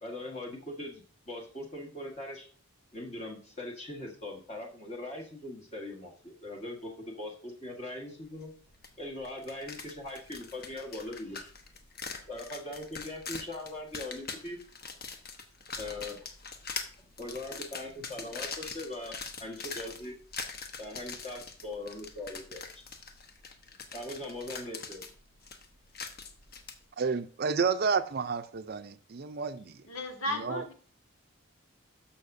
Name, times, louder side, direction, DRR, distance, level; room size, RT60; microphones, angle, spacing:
voice 1, 0.0-2.5 2.9-8.5 9.0-11.5 12.3-14.6 15.8-16.3 17.0-19.1 19.4-20.1 20.8-22.8 23.9-25.1, left 1 dB, 30° left, 1.5 m, -41 dB
sound 1, 8.8-8.9 9.2-26.8, left 5 dB, 45° left, 1.0 m, -42 dB
voice 2, 27.0-29.8 30.4-30.6, right 5 dB, 45° right, 0.5 m, -30 dB
voice 3, 29.9-30.7, left 1 dB, 85° left, 1.7 m, -34 dB
13.0 x 5.8 x 2.6 m
head